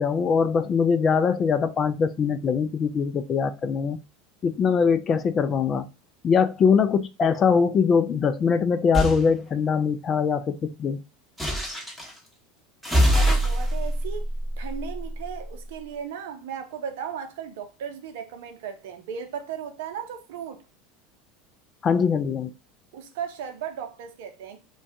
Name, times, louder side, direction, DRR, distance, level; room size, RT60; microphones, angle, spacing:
voice 1, 0.0-4.0 4.4-5.9 6.2-11.0 21.8-22.5, left 6 dB, 35° left, 0.4 m, -22 dB
sound 1, 8.9-9.2 11.4-12.1 12.8-15.5, equal, 5° left, 1.2 m, -24 dB
voice 2, 12.9-14.3 14.6-20.6 22.9-24.6, right 8 dB, 70° right, 0.6 m, -36 dB
2.6 x 2.3 x 3.6 m
hypercardioid pair, 85°, 0 cm